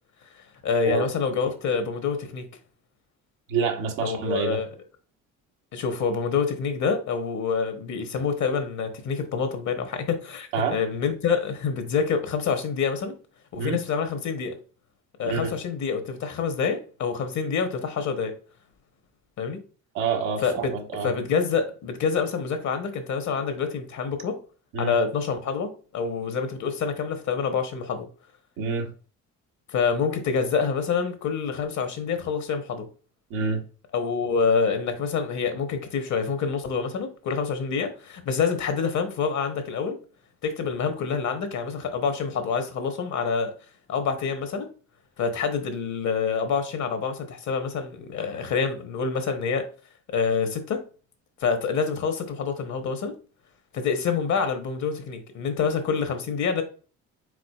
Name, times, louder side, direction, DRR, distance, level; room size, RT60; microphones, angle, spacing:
voice 1, 0.6-2.5 4.0-4.7 5.7-13.1 13.5-14.6 15.2-18.3 19.4-19.6 20.4-20.5 21.0-24.4 24.8-28.1 29.7-32.9 33.9-40.0 40.4-43.5 43.9-44.7 45.2-49.7 50.1-50.8 51.4-53.2 53.7-56.6, left 5 dB, 60° left, 1.2 m, -27 dB
voice 2, 3.5-4.6 10.5-10.8 13.6-13.8 15.2-15.5 19.9-21.1 24.7-24.9 28.6-28.9 33.3-33.6, right 5 dB, 85° right, 1.2 m, -27 dB
4.9 x 3.9 x 2.4 m
supercardioid pair, 65°, 33 cm